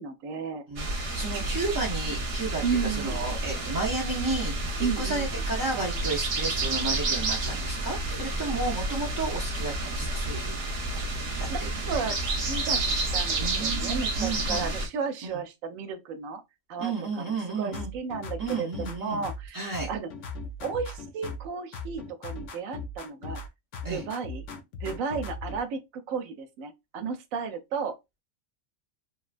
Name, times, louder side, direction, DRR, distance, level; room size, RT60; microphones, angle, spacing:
voice 1, 0.0-0.6 2.6-3.2 4.8-5.4 11.5-11.6 11.8-12.8 13.1-16.4 16.7-16.9 17.3-20.1 20.6-23.4 23.9-24.4 24.8-28.0, right 5 dB, 85° right, 1.0 m, -33 dB
voice 2, 0.7-10.5 11.4-12.0 13.4-14.7 15.2-15.4 16.8-17.9 18.4-19.9 23.8-24.0, right 3 dB, 35° right, 0.3 m, -33 dB
sound 1, 0.8-14.9, right 2 dB, 55° right, 0.9 m, -30 dB
sound 2, 17.7-19.5 19.7-21.5 21.7-23.5 23.7-25.6, left 3 dB, 70° left, 0.9 m, -38 dB
3.0 x 2.2 x 2.4 m
omnidirectional pair, 1.4 m